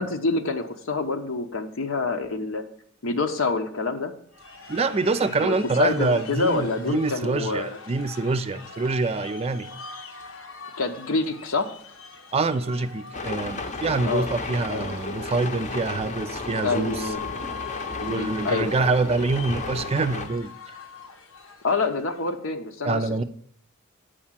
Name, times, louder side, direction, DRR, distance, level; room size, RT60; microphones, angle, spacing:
voice 1, 0.0-2.6 3.0-4.1 5.4-7.8 10.8-11.8 14.1-14.3 14.7-14.8 16.6-17.3 18.1-18.7 21.6-23.0, left 3 dB, 75° left, 6 dB, 0.9 m, -27 dB
sound 1, 4.3-22.3, left 5 dB, 90° left, 1.2 m, -42 dB
voice 2, 4.7-9.7 12.3-17.1 18.0-20.5 22.8-23.2, right 3 dB, 30° right, 11 dB, 0.4 m, -25 dB
sound 2, 13.1-20.3, left 3 dB, 35° left, 0.8 m, -33 dB
8.4 x 5.0 x 7.3 m, 0.63 s
head